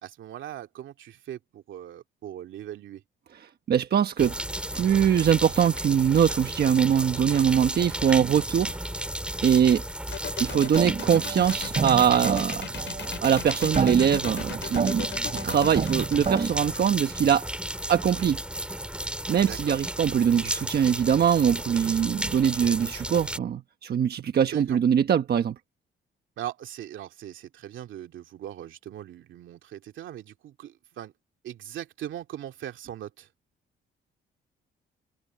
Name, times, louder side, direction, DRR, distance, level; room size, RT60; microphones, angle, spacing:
voice 1, 0.0-3.0 19.4-19.8 24.5-24.8 26.4-31.1 31.4-33.3, right 11 dB, 75° right, 2.5 m, -40 dB
voice 2, 3.7-4.4 4.7-9.1 9.4-9.8 10.4-12.7 13.2-17.5 17.9-18.4 19.3-25.6, right 8 dB, 55° right, 1.2 m, -22 dB
sound 1, 4.2-23.4, right 1 dB, 5° right, 5.6 m, -33 dB
sound 2, 10.1-17.9, left 10 dB, 65° left, 6.8 m, -38 dB
sound 3, 10.5-16.5, right 5 dB, 35° right, 4.1 m, -31 dB
cardioid pair, 90°, 20 cm